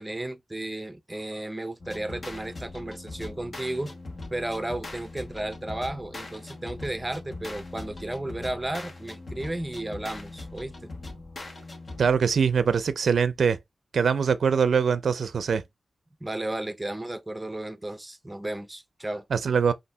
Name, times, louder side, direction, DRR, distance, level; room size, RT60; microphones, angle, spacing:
voice 1, 0.0-3.9 4.3-10.9 16.2-19.3, right 1 dB, 15° right, 0.6 m, -34 dB
sound 1, 1.8-12.3, left 2 dB, 50° left, 1.2 m, -41 dB
voice 2, 12.0-13.6 13.9-15.6 19.3-19.7, right 6 dB, 90° right, 0.4 m, -23 dB
5.4 x 2.6 x 3.3 m
wide cardioid pair, 95°, 0 cm